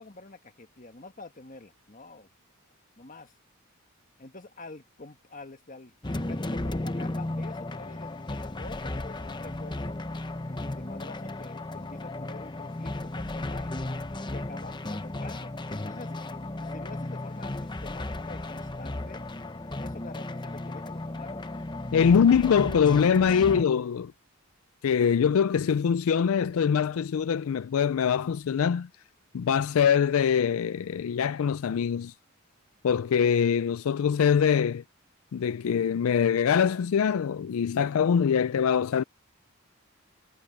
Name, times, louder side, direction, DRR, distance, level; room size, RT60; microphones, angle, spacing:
voice 1, 0.0-2.3 3.0-3.3 4.2-10.0 10.5-13.7 14.3-16.1 16.6-19.3 19.8-21.6, left 3 dB, 35° left, 1.6 m, -46 dB
sound 1, 6.0-23.6, left 2 dB, 20° left, 0.8 m, -35 dB
voice 2, 21.9-24.1 24.8-28.9 29.3-32.1 32.8-34.8 35.3-39.0, left 7 dB, 75° left, 0.4 m, -23 dB
head